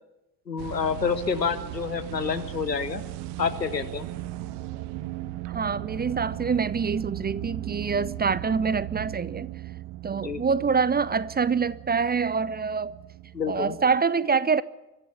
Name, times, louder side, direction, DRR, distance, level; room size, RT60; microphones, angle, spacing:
voice 1, 0.5-3.0 3.4-4.1 10.1-10.4 13.3-13.8, left 6 dB, 90° left, 1.0 m, -28 dB
sound 1, 0.6-14.0, right 15 dB, 60° right, 0.9 m, -37 dB
voice 2, 5.5-9.5 10.0-13.0 13.5-14.6, right 5 dB, 20° right, 0.7 m, -25 dB
23.5 x 13.5 x 9.4 m
figure-of-eight pair, 45°, 48 cm